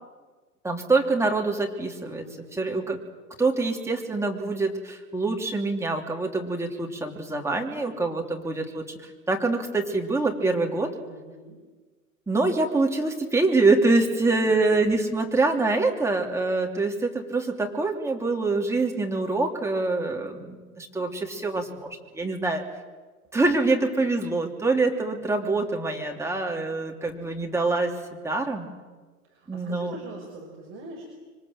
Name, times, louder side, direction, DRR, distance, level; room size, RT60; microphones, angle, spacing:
voice 1, 0.6-2.2 2.6-3.0 3.4-10.9 12.3-22.6 23.3-27.9 28.2-28.7 29.5-29.9, right 3 dB, 5° right, 1 dB, 3.1 m, -25 dB
voice 2, 2.2-2.6 7.9-8.7 11.1-11.6 14.4-14.8 15.5-15.6 24.0-24.1 26.3-26.8 29.2-31.0, right 1 dB, 30° right, 0 dB, 5.8 m, -44 dB
26.0 x 24.5 x 7.7 m, 1.3 s
hypercardioid pair, 110°, 43 cm